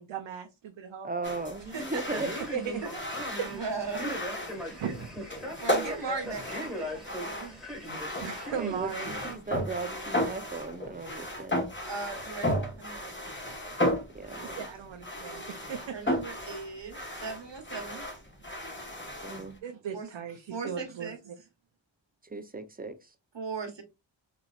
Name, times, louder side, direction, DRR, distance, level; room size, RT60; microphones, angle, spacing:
voice 1, 0.0-1.1 2.4-2.8 3.4-3.5 4.8-5.1 8.2-9.1 14.4-15.4 15.7-16.1 19.6-21.4, right 7 dB, 85° right, 0.6 m, -37 dB
voice 2, 1.0-2.3 8.5-11.7 14.1-14.7 19.2-19.6 22.2-23.1, right 3 dB, 20° right, 0.7 m, -37 dB
sound 1, 1.2-19.6, equal, 25° left, 1.4 m, -35 dB
voice 3, 1.7-2.2 2.8-2.9 3.5-4.2 5.6-7.6 11.8-13.1 15.9-18.0 19.9-20.1 20.5-21.2 23.3-23.8, right 4 dB, 65° right, 1.3 m, -38 dB
Male speech man speaking, 2.0-9.3, equal, ahead, 1.6 m, -39 dB
4.0 x 3.0 x 2.4 m
wide cardioid pair, 50°, 46 cm